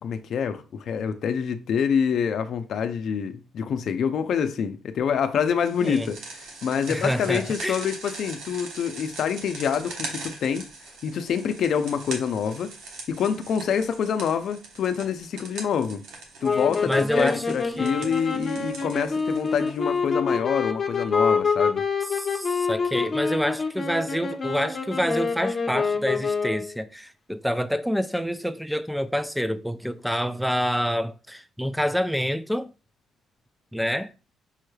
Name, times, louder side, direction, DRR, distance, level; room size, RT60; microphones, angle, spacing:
voice 1, 0.0-10.7 11.0-12.7 13.1-16.0 16.4-21.8, left 7 dB, 65° left, 0.5 m, -26 dB
sound 1, 5.6-20.0, right 3 dB, 85° right, 1.0 m, -41 dB
voice 2, 6.9-7.8 16.9-18.1 22.1-32.7 33.7-34.1, equal, ahead, 0.4 m, -27 dB
sound 2, 16.4-26.8, left 5 dB, 35° left, 0.9 m, -26 dB
5.6 x 3.1 x 2.3 m
cardioid pair, 90°, 0 cm